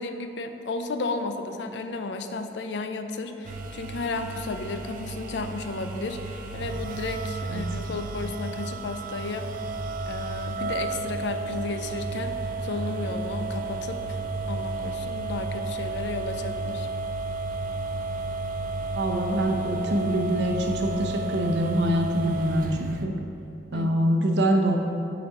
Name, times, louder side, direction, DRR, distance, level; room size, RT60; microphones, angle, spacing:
voice 1, 0.0-9.5 10.1-14.2 14.5-16.9 23.7-24.1, left 3 dB, 80° left, 7 dB, 0.4 m, -33 dB
sound 1, 3.4-23.0, right 3 dB, 50° right, 0.4 m, -32 dB
voice 2, 18.9-23.1 23.7-24.8, right 1 dB, 75° right, 2 dB, 0.7 m, -24 dB
7.0 x 4.1 x 4.8 m, 3.0 s
head